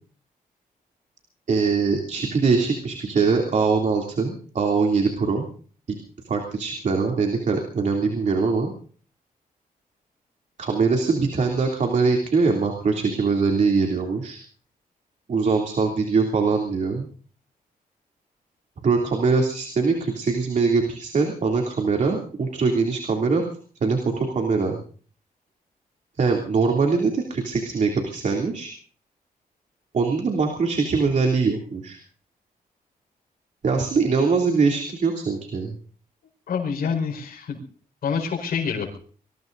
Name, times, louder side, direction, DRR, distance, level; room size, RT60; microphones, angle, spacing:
voice 1, 1.5-5.5 6.3-8.7 10.6-14.4 15.3-17.1 18.8-23.4 23.8-24.8 26.2-28.7 29.9-32.0 33.6-35.7, right 4 dB, 55° right, 2 dB, 2.9 m, -22 dB
voice 2, 36.5-37.6 38.0-39.0, left 6 dB, 90° left, 0 dB, 5.0 m, -27 dB
25.5 x 21.5 x 2.7 m, 0.43 s
wide cardioid pair, 130°, 15 cm